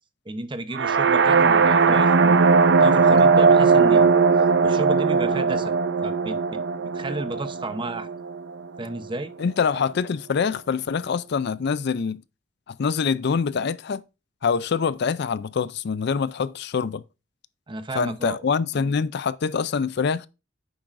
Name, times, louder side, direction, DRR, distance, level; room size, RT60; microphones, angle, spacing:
voice 1, 0.3-2.4 2.7-4.2 4.6-8.1 8.8-9.3 17.7-18.4 18.7-18.9, right 2 dB, 25° right, 0.8 m, -33 dB
sound 1, 0.7-8.6, right 5 dB, 65° right, 0.6 m, -18 dB
voice 2, 9.4-12.2 12.7-14.0 14.4-17.0 17.9-20.3, left 5 dB, 60° left, 0.4 m, -25 dB
9.3 x 7.2 x 2.5 m
head